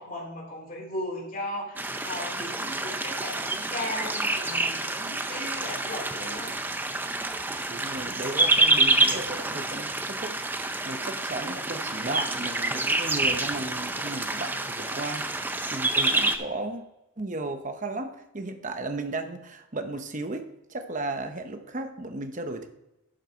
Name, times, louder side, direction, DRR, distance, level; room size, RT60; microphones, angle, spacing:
voice 1, 0.0-6.5, left 1 dB, 40° left, 0 dB, 2.8 m, -36 dB
sound 1, 1.8-16.4, right 2 dB, 10° right, 0.5 m, -27 dB
voice 2, 7.7-15.3 15.7-16.8 17.2-22.7, right 2 dB, 35° right, 7 dB, 0.9 m, -35 dB
11.5 x 6.6 x 4.5 m, 0.94 s
head